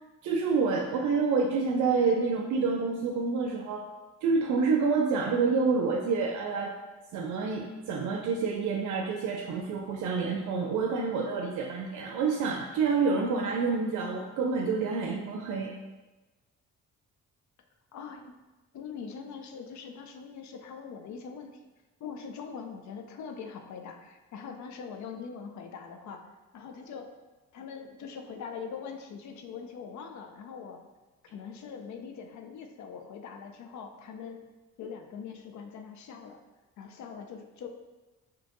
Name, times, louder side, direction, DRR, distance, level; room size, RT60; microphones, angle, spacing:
voice 1, 0.2-3.8 4.2-6.7 7.1-15.7, right 4 dB, 75° right, 1 dB, 0.5 m, -28 dB
voice 2, 17.9-18.3 18.7-21.6 22.0-26.3 26.5-27.1 27.5-30.8 31.3-34.4 34.8-36.4 36.8-37.7, left 6 dB, 70° left, 5 dB, 0.5 m, -42 dB
4.2 x 2.9 x 3.0 m, 1.2 s
cardioid pair, 90°, 30 cm